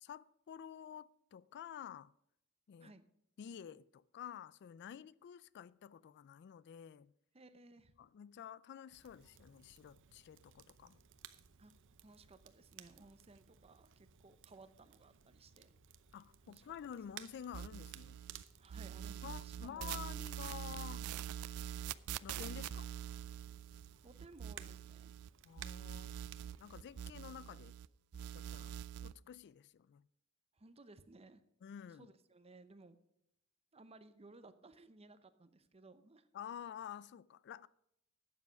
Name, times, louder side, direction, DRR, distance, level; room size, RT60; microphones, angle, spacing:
voice 1, 0.0-2.1 2.7-2.9 3.4-7.1 8.0-11.0 16.1-18.2 19.2-21.1 22.2-22.9 25.4-26.2 26.6-27.8 28.3-28.8 29.0-30.0 31.6-32.1 36.3-37.7, left 8 dB, 55° left, 0.3 m, -50 dB
voice 2, 7.3-7.9 11.6-11.7 12.0-15.7 16.5-16.6 18.6-20.0 24.0-25.1 30.5-31.4 32.0-33.0 33.7-36.3, right 2 dB, 30° right, 0.8 m, -59 dB
Crackle, 8.9-27.1, right 9 dB, 60° right, 0.8 m, -59 dB
sound 1, 17.5-18.4 18.7-25.3 25.6-27.9 28.1-29.1, right 9 dB, 90° right, 0.4 m, -45 dB
12.0 x 8.4 x 5.1 m
head